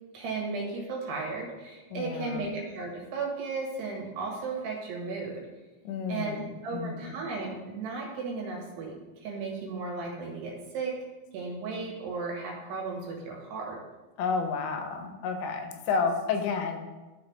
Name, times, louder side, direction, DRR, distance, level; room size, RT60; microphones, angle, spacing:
voice 1, 0.1-5.4 6.1-6.4 6.6-11.0 11.3-13.8, right 4 dB, 70° right, -1 dB, 3.6 m, -35 dB
voice 2, 1.9-2.5 5.8-7.1 14.2-16.8, left 5 dB, 85° left, 5 dB, 3.2 m, -31 dB
13.5 x 5.2 x 3.3 m, 1.2 s
omnidirectional pair, 5.2 m